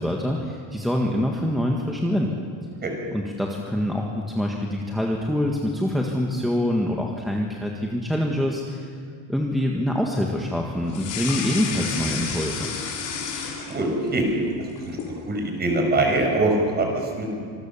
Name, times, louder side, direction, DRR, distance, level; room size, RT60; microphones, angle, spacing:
voice 1, 0.0-2.3 3.1-8.9 9.3-12.7, left 1 dB, ahead, -1 dB, 1.7 m, -25 dB
sound 1, 10.9-14.1 14.5-15.2, left 6 dB, 50° left, 5.3 m, -31 dB
voice 2, 13.7-14.3 14.8-15.0 15.3-17.4, right 2 dB, 25° right, 2 dB, 5.4 m, -23 dB
26.5 x 21.0 x 7.3 m, 2.2 s
cardioid pair, 160°, 40 cm